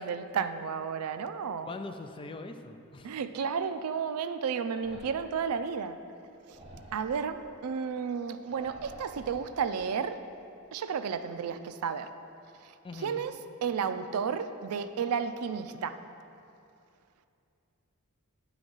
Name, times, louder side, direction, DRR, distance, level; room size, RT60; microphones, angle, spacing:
voice 1, 0.0-1.7 3.0-6.0 6.5-6.6 6.9-10.2 10.7-12.1 12.6-15.9, right 6 dB, 85° right, 11 dB, 0.4 m, -32 dB
voice 2, 1.6-3.1 12.8-13.2, left 2 dB, 25° left, 7 dB, 0.4 m, -42 dB
sound 1, 4.7-5.4 6.5-7.2 8.4-9.7, right 1 dB, 25° right, 1.1 m, -49 dB
9.6 x 3.9 x 6.1 m, 2.6 s
head